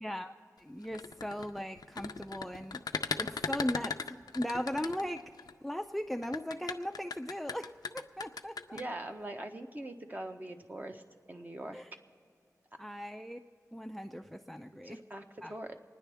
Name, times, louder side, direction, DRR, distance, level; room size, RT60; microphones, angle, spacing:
voice 1, 0.0-0.3 0.6-2.8 3.2-5.3 5.6-8.8 11.7-11.9 12.8-13.4 13.7-15.0 15.4-15.5, equal, ahead, 7 dB, 0.4 m, -38 dB
sound 1, 0.8-5.5 6.2-8.8, left 5 dB, 85° left, 0.4 m, -37 dB
voice 2, 8.7-11.0 11.3-11.8 14.7-15.2 15.5-15.7, right 1 dB, 25° right, 5 dB, 1.0 m, -42 dB
27.0 x 9.9 x 3.4 m, 2.3 s
wide cardioid pair, 65°, 6 cm